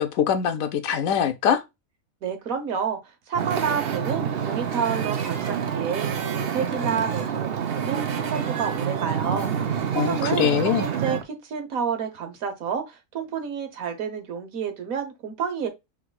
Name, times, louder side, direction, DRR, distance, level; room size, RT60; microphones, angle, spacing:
voice 1, 0.0-1.6 9.9-10.9, left 8 dB, 80° left, 1.1 m, -23 dB
voice 2, 2.2-15.7, right 6 dB, 75° right, 1.5 m, -30 dB
Wind / Ocean, 3.3-11.2, right 8 dB, 55° right, 0.7 m, -27 dB
5.9 x 3.1 x 2.3 m
omnidirectional pair, 1.5 m